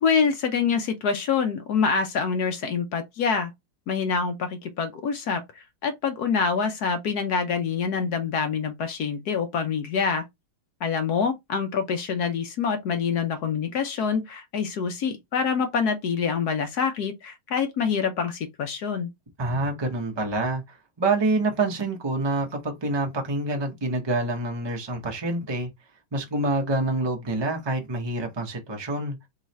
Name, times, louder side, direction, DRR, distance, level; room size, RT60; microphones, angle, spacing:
voice 1, 0.0-3.5 3.9-10.2 10.8-19.1, left 6 dB, 65° left, 1.0 m, -26 dB
voice 2, 19.4-25.7 26.1-29.2, right 2 dB, 40° right, 0.3 m, -27 dB
3.6 x 3.1 x 4.1 m
omnidirectional pair, 2.4 m